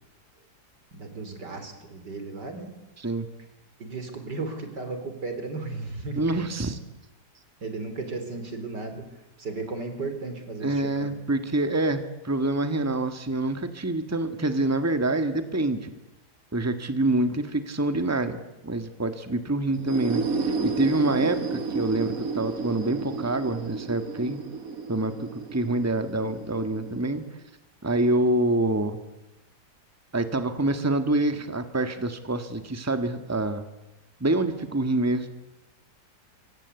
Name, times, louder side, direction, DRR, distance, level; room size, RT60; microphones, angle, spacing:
voice 1, 0.9-2.7 3.8-6.5 7.6-9.1 9.4-11.1, right 3 dB, 85° right, 7 dB, 4.4 m, -35 dB
voice 2, 6.2-6.8 10.6-15.9 16.5-20.2 20.6-24.4 24.9-27.2 27.8-29.0 30.1-33.7 34.2-35.3, right 2 dB, 10° right, 9 dB, 1.7 m, -26 dB
sound 1, 19.7-27.4, right 4 dB, 55° right, 2.2 m, -32 dB
26.0 x 24.0 x 8.3 m, 0.96 s
omnidirectional pair, 1.8 m